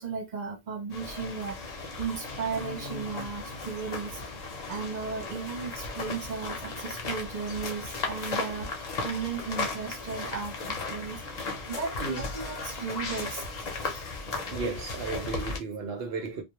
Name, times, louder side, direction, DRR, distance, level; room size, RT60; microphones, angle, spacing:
voice 1, 0.0-4.2 4.7-11.2 11.7-13.5 13.8-13.9, right 5 dB, 55° right, 0.6 m, -35 dB
sound 1, 0.9-15.6, left 3 dB, 45° left, 0.7 m, -36 dB
voice 2, 14.3-16.4, right 4 dB, 80° right, 0.9 m, -34 dB
2.2 x 2.2 x 2.9 m
omnidirectional pair, 1.0 m